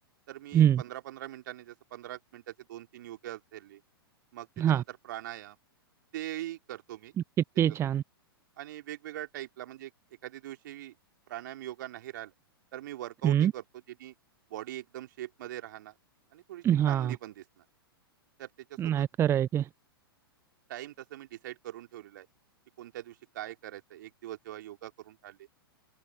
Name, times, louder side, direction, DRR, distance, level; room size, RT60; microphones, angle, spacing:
voice 1, 0.3-3.8 4.3-5.6 6.1-7.1 8.6-9.9 10.2-10.9 11.3-12.3 12.7-14.1 14.5-15.9 16.3-17.6 18.4-19.1 20.7-22.3 22.8-25.5, right 13 dB, 55° right, 3.7 m, -42 dB
voice 2, 7.6-8.0 13.2-13.5 16.6-17.1 18.8-19.7, right 10 dB, 20° right, 0.8 m, -24 dB
figure-of-eight pair, 105°, 13 cm